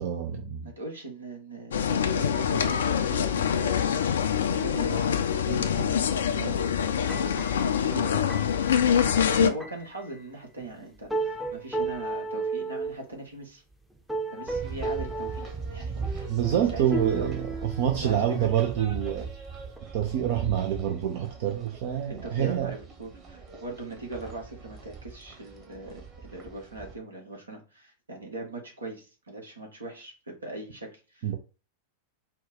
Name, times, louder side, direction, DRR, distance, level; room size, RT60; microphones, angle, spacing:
voice 1, 0.0-0.7 16.3-19.3 19.9-22.7 31.2-31.4, right 10 dB, 50° right, 0.5 m, -27 dB
voice 2, 0.6-6.5 7.0-7.5 7.9-8.2 8.9-9.1 9.4-13.6 14.3-17.3 17.9-18.5 22.1-31.4, right 2 dB, 75° right, 1.4 m, -40 dB
sound 1, 1.7-9.5, left 8 dB, 65° left, 0.4 m, -25 dB
sound 2, 6.9-10.0 10.6-10.7 11.1-13.0 13.9-15.6 16.0-18.4 18.8-19.2 19.8-19.9, right 3 dB, 5° right, 0.7 m, -34 dB
sound 3, 14.5-26.9, right 5 dB, 30° right, 1.3 m, -40 dB
4.4 x 2.3 x 3.9 m
figure-of-eight pair, 90°, 0 cm